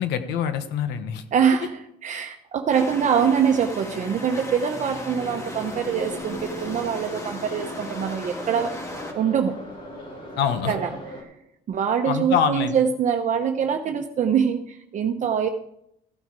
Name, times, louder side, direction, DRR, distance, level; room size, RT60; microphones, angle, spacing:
voice 1, 0.0-1.2 10.4-10.7 12.1-12.8, left 8 dB, 85° left, 10 dB, 1.2 m, -24 dB
voice 2, 1.3-8.8 9.1-9.6 10.7-11.0 11.7-15.5, right 7 dB, 45° right, 5 dB, 0.9 m, -24 dB
sound 1, 2.7-9.1, left 1 dB, 15° left, 2.1 m, -36 dB
Subway metro underground, 5.1-11.2, left 1 dB, 55° left, 4.1 m, -39 dB
14.5 x 8.6 x 4.8 m, 0.77 s
cardioid pair, 110°, 17 cm